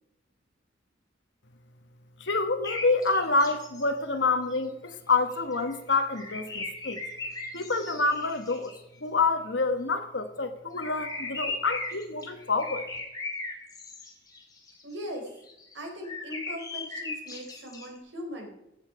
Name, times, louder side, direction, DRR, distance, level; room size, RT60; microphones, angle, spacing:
voice 1, 2.2-7.0 7.5-8.7 9.0-12.9, left 3 dB, 70° left, 8 dB, 1.4 m, -27 dB
sound 1, 2.6-3.8 4.5-4.6 4.9-8.8 10.8-14.8 15.3-15.7 16.0-17.9, left 3 dB, 20° left, 2.7 m, -38 dB
voice 2, 14.8-15.4 15.7-18.6, equal, 75° right, 2 dB, 3.8 m, -39 dB
15.5 x 8.8 x 4.9 m, 0.87 s
head